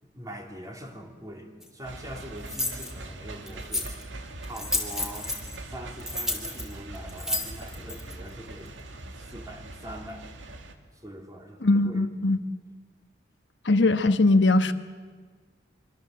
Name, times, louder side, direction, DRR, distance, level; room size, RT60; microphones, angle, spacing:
voice 1, 0.0-3.9 4.5-5.3 5.7-8.8 9.2-10.3 10.9-12.1, right 1 dB, 20° right, 2 dB, 2.9 m, -42 dB
sound 1, 1.6-1.7 2.4-2.9 3.5-4.0 4.4-5.6 6.0-8.1, left 2 dB, 5° right, 3.0 m, -31 dB
sound 2, 1.8-10.7, right 2 dB, 90° right, 2.1 m, -42 dB
voice 2, 11.6-12.4 13.6-14.7, left 2 dB, 75° left, 9 dB, 1.1 m, -20 dB
25.0 x 24.5 x 7.7 m, 1.5 s
head